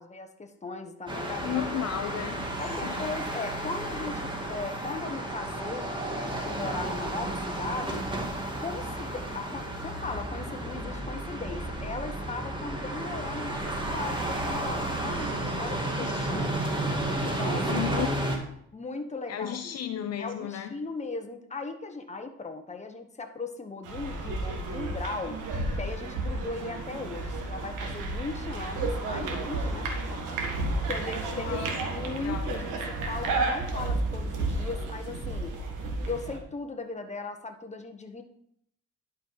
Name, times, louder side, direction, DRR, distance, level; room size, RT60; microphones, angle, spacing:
voice 1, 0.0-1.6 2.6-8.0 8.6-16.5 17.4-18.0 18.7-19.8 20.2-25.4 25.8-31.6 31.9-35.5 36.1-38.2, left 3 dB, 25° left, 5 dB, 1.2 m, -38 dB
sound 1, 1.1-18.4, right 1 dB, 15° right, 2.0 m, -32 dB
voice 2, 1.4-2.5 2.8-3.2 15.8-16.6 17.7-18.1 19.3-20.7 31.3-31.9 32.2-32.6, left 9 dB, 55° left, 7 dB, 0.7 m, -34 dB
sound 2, 23.8-36.4, right 2 dB, 85° right, 1.6 m, -32 dB
11.0 x 5.3 x 4.7 m, 0.71 s
cardioid pair, 90°, 30 cm